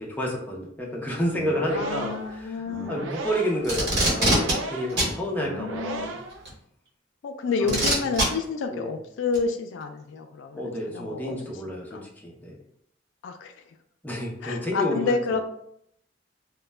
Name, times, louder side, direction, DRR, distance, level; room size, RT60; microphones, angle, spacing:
voice 1, 0.0-2.6 2.9-6.1 7.6-8.1 8.7-8.9 10.5-12.6 14.0-15.2, equal, 10° left, -2 dB, 0.4 m, -30 dB
sound 1, 1.3-6.5, right 3 dB, 80° right, 0.4 m, -36 dB
voice 2, 1.6-3.1 5.4-6.1 7.2-11.3 11.9-12.1 13.2-13.5 14.4-15.4, left 4 dB, 75° left, 6 dB, 0.3 m, -29 dB
Packing tape duct tape, 3.6-4.5 5.0-5.1 6.4-6.5 7.7-8.2 9.3-9.4, right 1 dB, 60° right, 1.0 m, -22 dB
2.1 x 2.1 x 3.2 m, 0.72 s
head